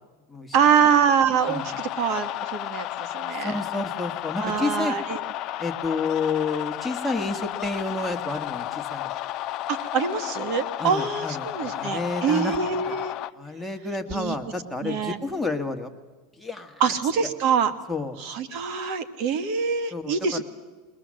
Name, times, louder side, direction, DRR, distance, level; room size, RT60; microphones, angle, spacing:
voice 1, 0.5-3.5 4.4-5.2 9.7-13.1 14.1-14.3 14.8-15.2 16.8-17.7 18.2-20.4, right 7 dB, 55° right, 10 dB, 1.6 m, -24 dB
sound 1, 1.4-13.3, left 14 dB, 45° left, 0.6 m, -33 dB
voice 2, 3.4-5.0 5.6-9.1 10.8-12.6 12.8-13.0 13.3-15.9 16.4-16.8 17.9-18.2 19.9-20.4, left 3 dB, ahead, 2 dB, 1.6 m, -30 dB
21.5 x 20.0 x 7.6 m, 1.3 s
supercardioid pair, 130°, 0 cm